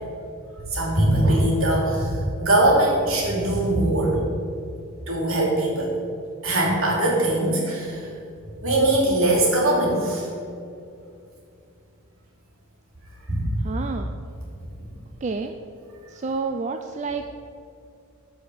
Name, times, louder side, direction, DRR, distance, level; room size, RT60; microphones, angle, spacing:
voice 1, 0.7-2.1 2.4-4.2 5.1-5.9 6.4-8.0 8.6-10.3 13.3-13.5, right 1 dB, 65° right, -3 dB, 2.9 m, -21 dB
voice 2, 13.6-14.1 15.2-15.5 16.1-17.2, right 4 dB, 30° right, 6 dB, 0.4 m, -29 dB
13.0 x 4.9 x 6.7 m, 2.5 s
head